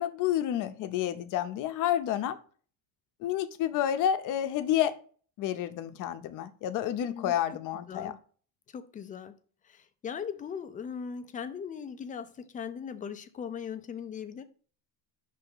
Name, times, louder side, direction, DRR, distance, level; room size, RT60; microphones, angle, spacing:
voice 1, 0.0-2.4 3.2-4.9 5.4-8.1, left 11 dB, 55° left, 0.7 m, -29 dB
voice 2, 7.0-7.6 7.9-8.2 8.7-9.3 9.6-14.4, left 7 dB, 20° left, 0.4 m, -39 dB
5.6 x 3.4 x 5.3 m
cardioid pair, 155°, 39 cm